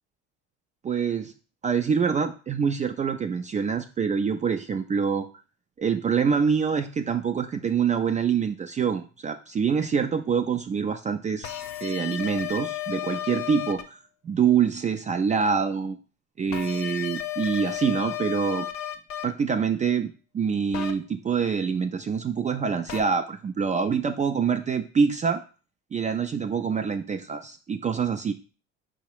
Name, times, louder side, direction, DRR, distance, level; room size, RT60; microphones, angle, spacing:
voice 1, 0.8-1.3 1.6-5.3 5.8-11.5 11.8-14.0 14.2-16.0 16.4-18.7 19.2-25.4 25.9-28.3, right 6 dB, 20° right, 6 dB, 0.3 m, -25 dB
sound 1, 11.4-13.8 16.5-19.2 20.7-20.9 22.9-23.0, left 11 dB, 50° left, 0.7 m, -33 dB
4.7 x 2.1 x 4.5 m, 0.35 s
supercardioid pair, 80°, 35 cm